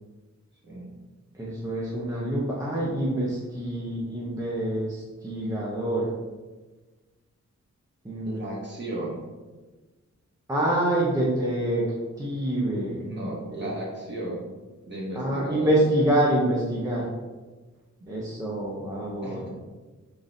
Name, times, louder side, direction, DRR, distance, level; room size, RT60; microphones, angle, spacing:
voice 1, 1.3-6.1 8.0-8.4 10.5-11.8 12.2-13.0 13.5-13.7 15.2-17.1 18.1-19.5, right 1 dB, 10° right, -6 dB, 0.7 m, -26 dB
voice 2, 8.2-9.2 13.0-14.5 14.8-16.0 19.2-19.5, right 1 dB, 35° right, -5 dB, 1.2 m, -34 dB
4.7 x 3.9 x 2.7 m, 1.3 s
wide cardioid pair, 145°, 30 cm